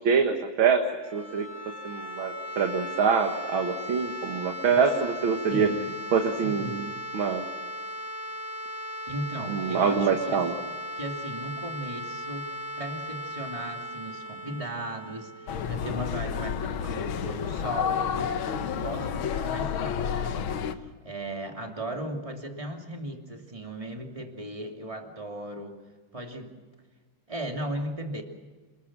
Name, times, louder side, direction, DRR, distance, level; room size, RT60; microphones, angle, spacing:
voice 1, 0.0-0.8 1.1-1.5 1.8-5.7 6.1-6.9 7.1-7.5 9.5-10.5, right 6 dB, 80° right, 3 dB, 2.4 m, -25 dB
sound 1, 0.9-16.7, left 1 dB, 35° right, 4.8 m, -38 dB
voice 2, 5.5-5.8 6.4-6.8 9.1-10.5 11.0-18.4 18.7-25.8 26.1-26.6 27.3-28.2, right 1 dB, 15° right, 2 dB, 2.7 m, -37 dB
sound 2, 15.5-20.7, left 7 dB, 85° left, 1.9 m, -30 dB
28.0 x 21.5 x 6.1 m, 1.4 s
omnidirectional pair, 2.2 m